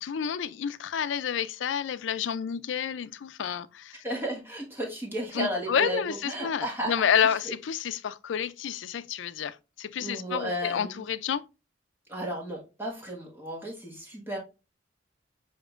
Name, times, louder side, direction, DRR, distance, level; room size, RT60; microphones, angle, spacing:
voice 1, 0.0-4.0 5.3-11.4, left 8 dB, 85° left, 0.4 m, -29 dB
voice 2, 4.0-7.0 10.0-11.0 12.1-14.4, equal, 10° right, 1.5 m, -33 dB
7.3 x 2.9 x 2.4 m
head